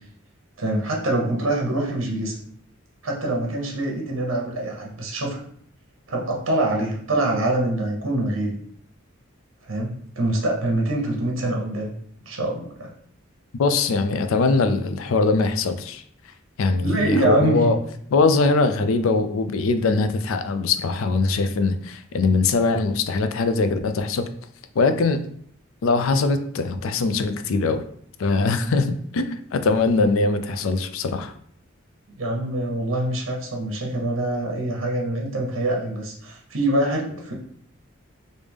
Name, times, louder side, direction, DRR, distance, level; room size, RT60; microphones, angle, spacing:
voice 1, 0.6-2.3 3.0-5.4 6.1-8.6 9.6-11.9 12.2-12.9 16.8-17.7 32.2-37.3, right 1 dB, 70° right, 0 dB, 0.9 m, -24 dB
voice 2, 13.6-16.0 16.6-17.8 18.1-24.3 24.8-25.2 25.8-27.8 28.2-31.3, left 3 dB, 80° left, 9 dB, 0.4 m, -21 dB
3.3 x 2.6 x 3.4 m, 0.63 s
head